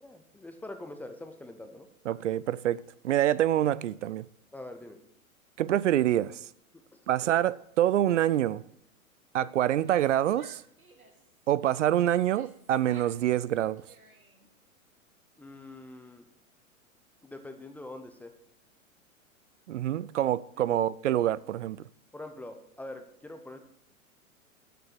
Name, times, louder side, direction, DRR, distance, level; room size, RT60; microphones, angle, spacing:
voice 1, 0.0-1.9 4.5-5.0 6.7-7.0 15.4-16.3 17.2-18.3 20.7-20.8 22.1-23.6, left 2 dB, 5° left, 0.5 m, -44 dB
voice 2, 2.1-4.3 5.6-6.5 7.1-8.6 9.3-10.6 11.5-13.8 19.7-21.8, right 12 dB, 60° right, 0.5 m, -26 dB
Female speech woman speaking / Yell, 9.7-11.3 11.9-13.2 13.5-14.5, right 3 dB, 90° right, 1.8 m, -55 dB
11.5 x 6.9 x 6.5 m
figure-of-eight pair, 105°, 42 cm